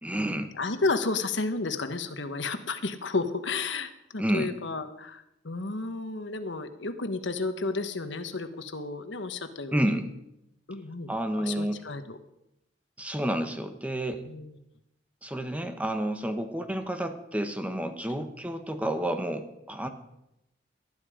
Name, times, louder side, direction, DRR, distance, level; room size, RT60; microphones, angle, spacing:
voice 1, 0.0-0.5 4.2-4.5 9.7-10.1 11.1-11.8 13.0-14.2 15.2-19.9, right 1 dB, 10° right, 7 dB, 1.2 m, -30 dB
voice 2, 0.6-9.8 10.7-11.1 11.4-12.2 14.2-14.6 18.1-18.2, left 3 dB, 75° left, 9 dB, 1.3 m, -32 dB
19.0 x 12.5 x 5.1 m, 0.85 s
head